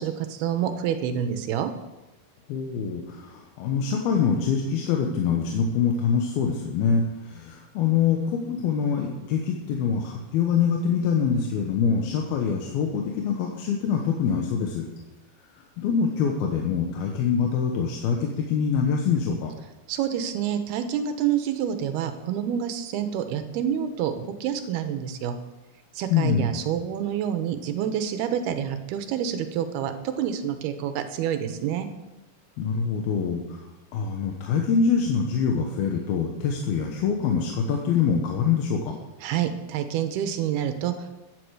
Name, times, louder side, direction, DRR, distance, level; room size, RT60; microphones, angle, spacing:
voice 1, 0.0-1.7 19.9-24.1 24.4-25.4 25.9-31.9 39.2-41.2, right 9 dB, 80° right, 8 dB, 2.8 m, -28 dB
voice 2, 2.5-14.9 15.8-19.5 26.1-26.6 32.6-33.7 33.9-39.0, left 6 dB, 70° left, 1 dB, 2.9 m, -25 dB
14.0 x 10.5 x 4.9 m, 1.0 s
omnidirectional pair, 4.8 m